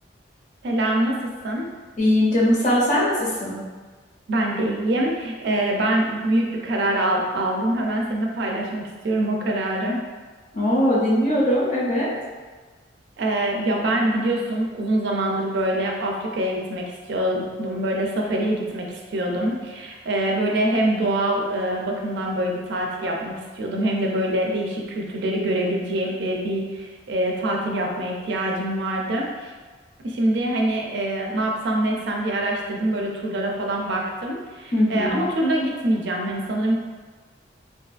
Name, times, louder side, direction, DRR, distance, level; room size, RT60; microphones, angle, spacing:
voice 1, 0.6-1.7 4.3-10.0 13.2-29.5 30.0-36.8, right 1 dB, 65° right, 0 dB, 0.4 m, -24 dB
voice 2, 2.0-3.6 10.5-12.1 34.7-35.1, left 1 dB, 40° left, -5 dB, 0.6 m, -20 dB
2.6 x 2.3 x 2.3 m, 1.4 s
head